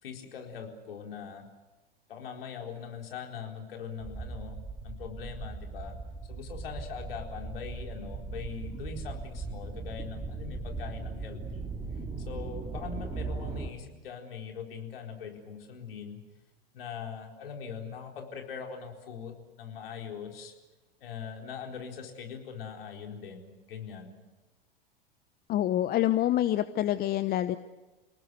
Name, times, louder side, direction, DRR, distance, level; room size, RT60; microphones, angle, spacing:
voice 1, 0.0-1.5 2.1-4.6 4.8-5.9 6.3-11.7 12.3-16.2 16.7-20.5 21.0-24.2, left 6 dB, 70° left, 2 dB, 4.4 m, -41 dB
sound 1, 4.0-13.7, right 3 dB, 15° right, 2.7 m, -38 dB
voice 2, 25.5-27.6, left 13 dB, 30° left, 13 dB, 0.9 m, -26 dB
29.0 x 19.0 x 8.2 m, 1.2 s
figure-of-eight pair, 90°, 30 cm